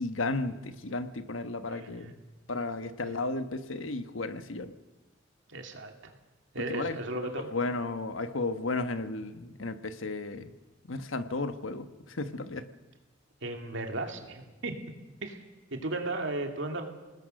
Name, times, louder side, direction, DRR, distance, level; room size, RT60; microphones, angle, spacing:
voice 1, 0.0-2.2 2.5-4.7 6.7-6.9 7.2-10.5 10.9-12.7, left 3 dB, 90° left, 10 dB, 1.3 m, -34 dB
voice 2, 1.7-2.2 3.0-3.1 5.5-6.1 6.5-7.5 13.4-14.8 15.2-15.4 15.7-16.9, right 2 dB, 70° right, 4 dB, 2.7 m, -35 dB
27.5 x 19.5 x 6.5 m, 1.2 s
head